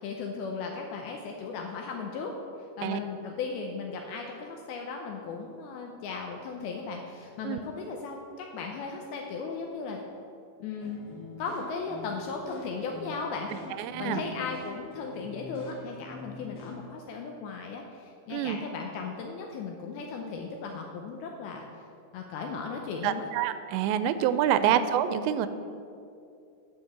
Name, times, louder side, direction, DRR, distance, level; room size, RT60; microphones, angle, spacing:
voice 1, 0.0-2.4 2.8-10.0 10.6-11.0 11.4-13.5 14.0-21.7 22.1-23.3 24.5-24.8, left 4 dB, 80° left, 1 dB, 2.3 m, -36 dB
Beach guitar bahia, 10.7-16.7, left 4 dB, 40° left, 2.3 m, -45 dB
voice 2, 13.8-14.2 18.3-18.6 23.0-25.5, right 10 dB, 90° right, 11 dB, 2.8 m, -26 dB
10.0 x 5.1 x 7.2 m, 2.6 s
omnidirectional pair, 5.1 m